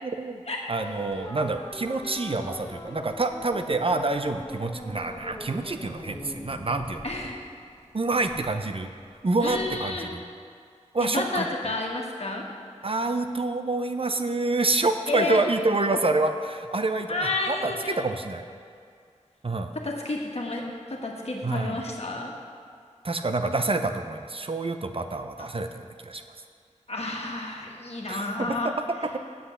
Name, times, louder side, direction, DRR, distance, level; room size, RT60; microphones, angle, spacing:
voice 1, 0.0-0.4 0.7-7.0 7.9-8.9 9.2-10.2 10.9-11.5 12.8-18.4 19.4-19.7 21.4-21.9 23.0-26.2 28.1-28.7, right 2 dB, 50° right, 7 dB, 0.6 m, -27 dB
sound 1, 0.8-9.9, left 1 dB, 20° left, 1.3 m, -42 dB
voice 2, 7.0-7.4 9.4-10.1 11.0-12.4 15.1-15.4 17.1-18.1 19.8-20.6 20.9-22.3 26.9-28.7, left 2 dB, 55° left, -1 dB, 1.6 m, -30 dB
8.3 x 7.8 x 6.6 m, 2.2 s
wide cardioid pair, 60°, 12 cm